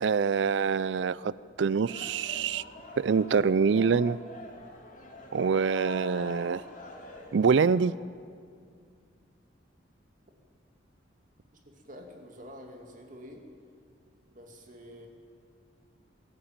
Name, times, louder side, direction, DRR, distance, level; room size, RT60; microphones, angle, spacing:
voice 1, 0.0-1.3 1.6-2.6 3.0-4.2 5.3-6.6 7.3-8.0, right 5 dB, 70° right, 19 dB, 0.4 m, -25 dB
sound 1, 1.8-7.7, left 1 dB, 45° left, 3.5 m, -45 dB
voice 2, 11.7-13.4 14.3-15.1, equal, 45° right, 3 dB, 2.4 m, -48 dB
23.5 x 14.0 x 8.9 m, 2.2 s
head